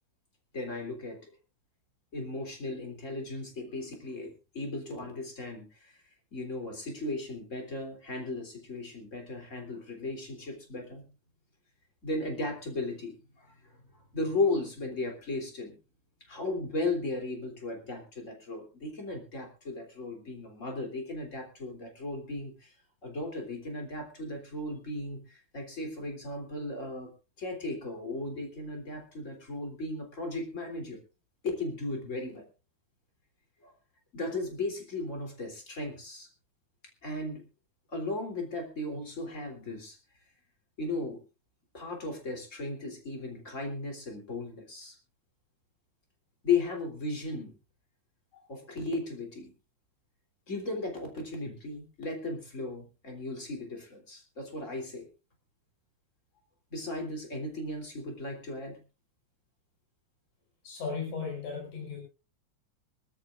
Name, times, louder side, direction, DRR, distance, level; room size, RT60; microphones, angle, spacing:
voice 1, 0.5-1.3 2.1-6.0 6.3-11.0 12.0-15.8 16.2-22.7 23.0-27.1 27.4-31.0 31.4-32.4 33.6-33.7 34.1-36.3 37.0-37.4 37.9-40.0 40.8-41.2 41.7-45.0 46.4-47.5 48.3-49.5 50.5-55.1 56.7-58.8, left 2 dB, 25° left, 3 dB, 3.5 m, -36 dB
voice 2, 60.6-62.0, left 5 dB, 80° left, 1 dB, 6.3 m, -36 dB
24.0 x 13.0 x 2.5 m, 0.31 s
omnidirectional pair, 3.5 m